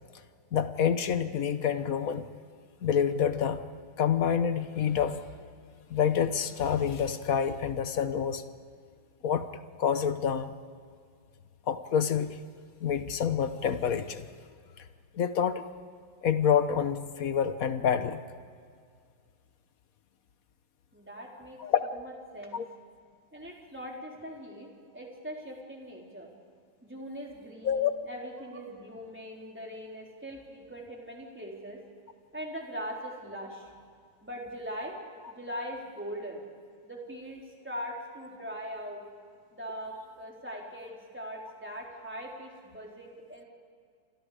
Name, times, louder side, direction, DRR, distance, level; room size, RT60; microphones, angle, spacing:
voice 1, 0.5-2.3 2.8-3.6 4.0-5.2 5.9-8.4 9.2-9.5 9.8-10.6 11.7-12.4 12.8-14.2 15.1-15.6 16.2-18.2 21.6-21.8 22.5-22.7 27.6-27.9, left 8 dB, 50° left, 10 dB, 1.2 m, -27 dB
voice 2, 20.9-22.0 22.3-22.6 23.3-26.3 26.8-31.8 32.3-33.7 34.2-35.0 35.3-36.4 36.8-39.0 39.5-43.4, equal, 5° right, -2 dB, 3.8 m, -41 dB
29.0 x 25.5 x 5.1 m, 2.1 s
omnidirectional pair, 2.2 m